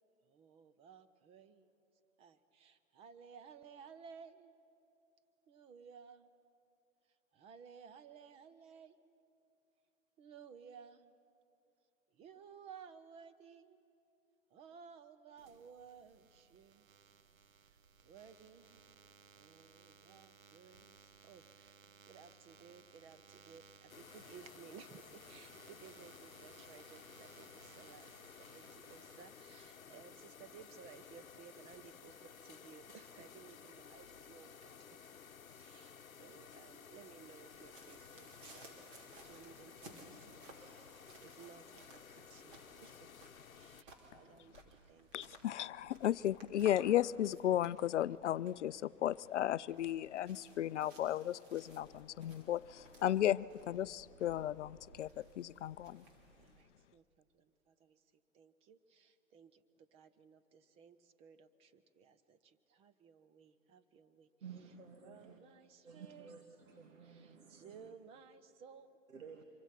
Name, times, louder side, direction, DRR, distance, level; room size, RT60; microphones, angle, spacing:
voice 1, 0.3-1.7 2.2-4.6 5.5-6.3 7.3-9.2 10.2-11.1 12.1-13.8 14.5-16.9 17.6-17.8 18.0-19.0 19.3-32.2 32.4-35.0 35.6-38.9 39.2-43.1 43.5-45.4 56.4-58.0 58.3-64.3 64.6-64.7 65.0-66.4 67.0-69.0, right 6 dB, 15° right, 0.6 m, -58 dB
sound 1, 15.4-29.9, right 6 dB, 85° right, 1.1 m, -62 dB
sound 2, 23.9-43.8, left 7 dB, 90° left, 0.9 m, -56 dB
sound 3, 37.5-56.6, right 2 dB, 40° right, 3.8 m, -60 dB
voice 2, 45.1-56.0, left 12 dB, 60° left, 0.5 m, -35 dB
voice 3, 64.4-65.4 65.8-67.8 69.1-69.4, right 6 dB, 70° right, 1.8 m, -53 dB
25.5 x 23.5 x 5.9 m
hypercardioid pair, 125°, 40 cm